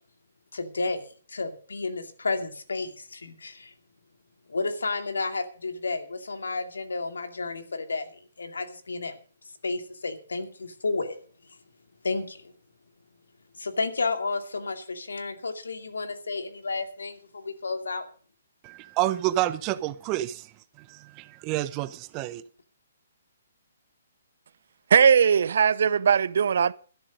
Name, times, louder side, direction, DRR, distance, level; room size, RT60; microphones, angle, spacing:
voice 1, 0.5-1.0 1.3-3.7 4.5-9.2 9.6-11.1 12.0-12.5 13.6-18.0, left 3 dB, 80° left, 2.4 m, -31 dB
voice 2, 18.6-22.4, right 15 dB, 30° right, 0.9 m, -29 dB
voice 3, 24.9-26.7, right 7 dB, 65° right, 0.7 m, -19 dB
13.0 x 11.5 x 5.2 m
hypercardioid pair, 140°, 0 cm